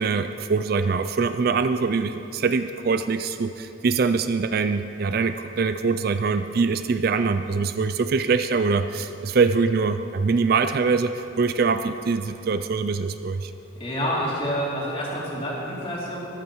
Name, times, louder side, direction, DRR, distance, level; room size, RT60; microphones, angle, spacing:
voice 1, 0.0-13.5, right 4 dB, 45° right, 10 dB, 0.4 m, -23 dB
voice 2, 13.8-16.3, equal, 30° left, -5 dB, 2.8 m, -28 dB
14.0 x 13.0 x 4.6 m, 2.8 s
head